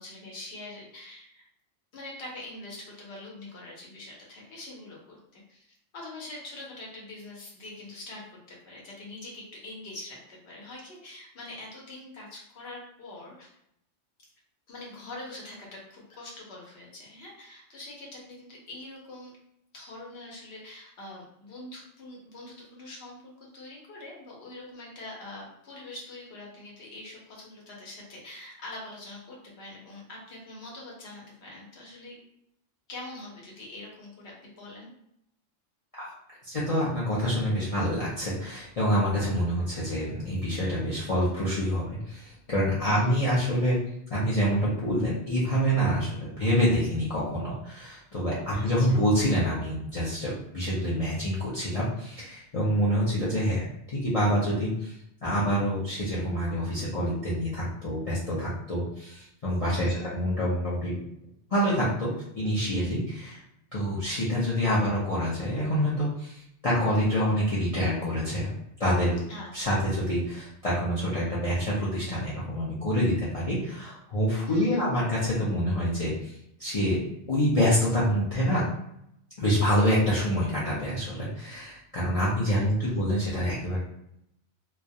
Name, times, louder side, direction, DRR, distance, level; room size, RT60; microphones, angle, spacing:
voice 1, 0.0-1.5 1.9-13.5 14.7-19.3 19.7-32.2 32.9-34.9 42.8-43.1 48.5-48.9 59.7-60.1 69.3-69.8 74.5-74.8 82.5-83.0, left 2 dB, 60° left, -3 dB, 1.0 m, -44 dB
voice 2, 36.4-43.8 44.1-53.6 53.9-54.9 55.2-61.0 61.5-63.4 63.7-68.5 68.8-69.2 69.5-76.3 76.6-77.0 77.3-78.6 79.4-83.8, equal, 45° left, -7 dB, 0.5 m, -26 dB
2.3 x 2.1 x 2.6 m, 0.76 s
omnidirectional pair, 1.2 m